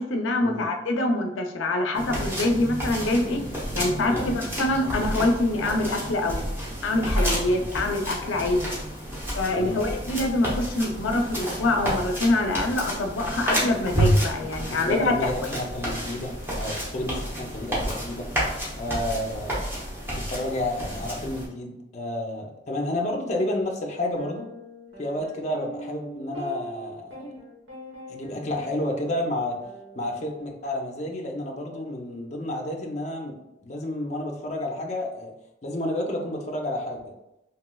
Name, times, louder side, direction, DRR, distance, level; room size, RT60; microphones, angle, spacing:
voice 1, 0.0-3.5 3.7-6.4 6.8-8.7 9.3-15.5, left 2 dB, 90° left, 4 dB, 0.5 m, -25 dB
sound 1, 1.9-21.5, equal, 15° right, 0.8 m, -30 dB
voice 2, 14.7-18.2 18.7-19.6 20.2-24.5 25.0-27.2 28.1-29.6 30.0-33.4 33.6-35.3 35.6-37.0, left 1 dB, 35° left, 1 dB, 0.4 m, -30 dB
sound 2, 23.3-23.5 24.2-30.5, equal, 80° right, 1.1 m, -42 dB
3.0 x 2.9 x 2.2 m, 0.89 s
head